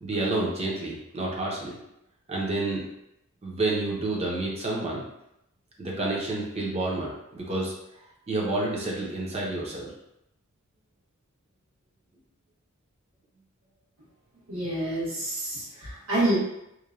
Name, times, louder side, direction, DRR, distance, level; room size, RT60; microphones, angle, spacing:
voice 1, 0.0-1.8 2.3-2.8 3.4-5.0 5.8-7.7 8.3-9.9, right 2 dB, 30° right, -3 dB, 0.6 m, -29 dB
voice 2, 14.5-16.4, right 1 dB, 80° right, -8 dB, 1.4 m, -27 dB
3.0 x 2.1 x 2.5 m, 0.84 s
head